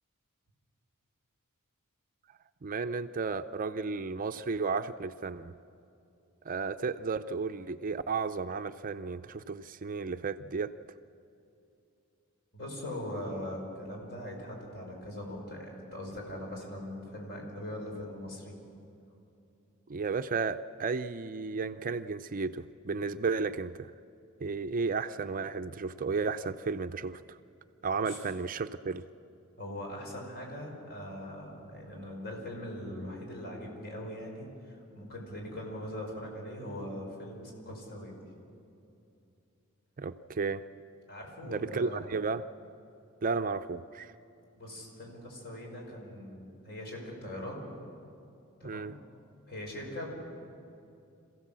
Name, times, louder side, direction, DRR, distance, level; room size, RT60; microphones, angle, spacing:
voice 1, 2.6-5.5 6.4-10.7 19.9-23.9 24.4-27.4 27.8-29.0 40.0-40.6 41.5-42.4 43.2-44.1 48.6-48.9, right 4 dB, 40° right, 10 dB, 0.5 m, -33 dB
voice 2, 12.5-18.6 28.0-28.2 29.6-38.2 41.1-42.1 44.5-47.8 48.6-49.0 49.5-50.1, left 1 dB, 50° left, 0 dB, 5.4 m, -41 dB
27.0 x 16.0 x 7.5 m, 2.7 s
head